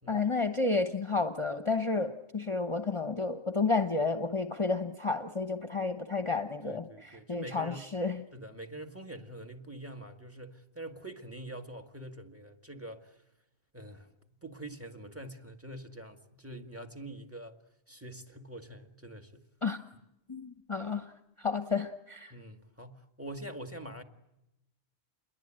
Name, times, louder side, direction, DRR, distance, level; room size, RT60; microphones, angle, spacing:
voice 1, 0.1-8.2 19.6-19.8 20.3-21.1 21.4-22.3, left 4 dB, 30° left, 1.1 m, -31 dB
voice 2, 6.6-7.9 8.3-13.2 13.7-14.1 14.4-17.6 17.9-19.3 22.3-24.0, right 1 dB, 10° right, 1.9 m, -45 dB
28.5 x 22.0 x 8.9 m
omnidirectional pair, 1.1 m